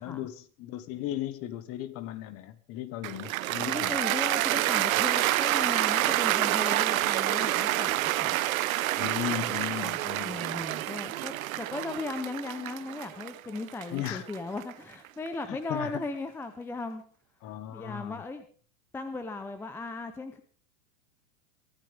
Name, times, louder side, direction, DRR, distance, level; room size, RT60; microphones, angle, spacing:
voice 1, 0.0-3.9 9.0-10.7 13.9-14.3 15.5-16.0 17.4-18.2, left 12 dB, 30° left, 14 dB, 1.3 m, -36 dB
Cheering / Applause, 3.0-15.3, right 15 dB, 70° right, 1.0 m, -28 dB
voice 2, 3.6-8.4 9.8-17.0 17.7-18.4 18.9-20.4, left 3 dB, 5° left, 9 dB, 0.7 m, -37 dB
23.0 x 13.5 x 3.5 m, 0.43 s
supercardioid pair, 145°, 43 cm